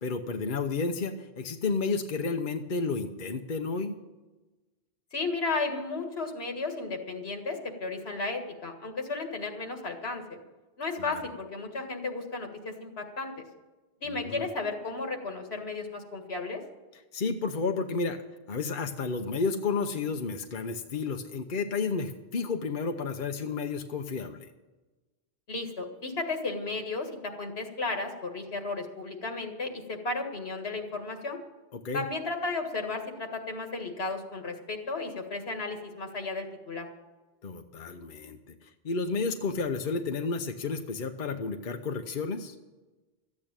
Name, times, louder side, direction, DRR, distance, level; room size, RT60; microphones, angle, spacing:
voice 1, 0.0-4.0 11.0-11.2 14.1-14.5 17.1-18.2 18.5-24.5 31.7-32.0 37.4-42.6, left 4 dB, 55° left, 6 dB, 1.0 m, -31 dB
voice 2, 5.1-10.2 10.8-13.3 14.0-16.6 25.5-31.4 31.9-36.9, left 3 dB, 85° left, 4 dB, 2.0 m, -34 dB
13.5 x 8.7 x 8.9 m, 1.2 s
omnidirectional pair, 1.0 m